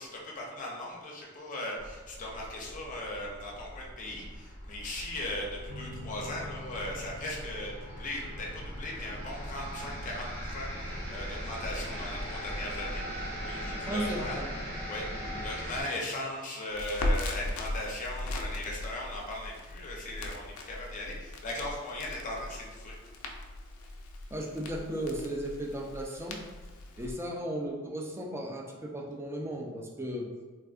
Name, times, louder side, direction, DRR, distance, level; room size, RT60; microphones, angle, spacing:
voice 1, 0.0-14.4 14.8-15.1 15.4-22.9, left 1 dB, 40° left, -2 dB, 0.6 m, -38 dB
sound 1, 1.8-15.8, equal, 50° right, 0.9 m, -40 dB
sound 2, 5.7-16.7, left 1 dB, 90° right, 0.5 m, -51 dB
voice 2, 13.9-14.5 15.2-15.4 24.3-26.4 27.0-30.3, right 1 dB, 10° right, 0 dB, 0.3 m, -35 dB
Crackle, 16.7-27.1, left 1 dB, 90° left, 0.4 m, -38 dB
3.5 x 2.4 x 2.4 m, 1.4 s
head